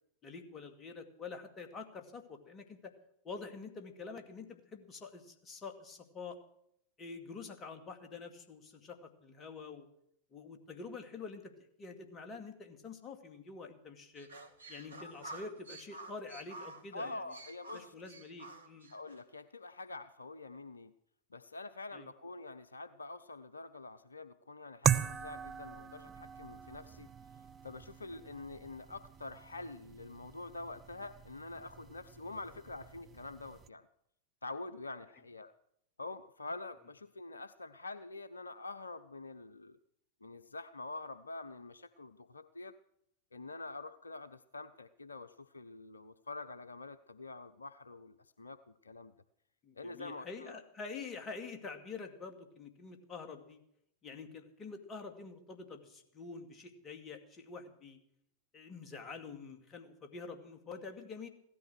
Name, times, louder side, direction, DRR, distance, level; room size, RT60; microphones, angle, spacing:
voice 1, 0.2-2.9 3.2-6.4 7.0-9.9 10.3-11.5 11.8-14.3 14.7-17.2 17.7-18.9 21.9-22.1 49.6-53.6 54.0-58.0 58.5-61.3, left 4 dB, 25° left, 6 dB, 2.5 m, -47 dB
sound 1, 14.2-19.2, right 2 dB, 70° right, 1.8 m, -50 dB
voice 2, 16.9-17.9 18.9-20.9 21.3-27.1 27.6-33.9 34.4-35.5 36.0-39.8 40.2-42.8 43.3-48.6 48.8-49.1 49.8-50.6, left 3 dB, 75° left, 13 dB, 0.6 m, -46 dB
sound 2, 24.8-33.7, right 9 dB, 25° right, 0.7 m, -39 dB
16.5 x 13.0 x 6.4 m, 0.73 s
figure-of-eight pair, 90°, 0 cm